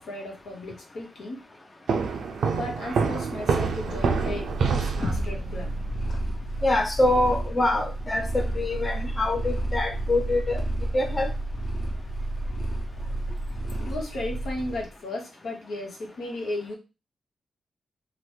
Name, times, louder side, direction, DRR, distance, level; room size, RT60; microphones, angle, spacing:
voice 1, 0.0-1.5 2.5-5.7 13.8-16.8, left 2 dB, 80° left, 0 dB, 1.0 m, -35 dB
sound 1, 1.9-5.6, right 5 dB, 80° right, 0.4 m, -26 dB
Purr, 3.7-14.9, right 2 dB, 60° left, 1.1 m, -31 dB
sound 2, 5.0-9.0, left 2 dB, 40° left, 0.8 m, -39 dB
voice 2, 6.6-10.6 10.9-11.3, left 2 dB, 25° left, 2 dB, 0.5 m, -25 dB
2.9 x 2.1 x 3.2 m, 0.29 s
cardioid pair, 80°, 0 cm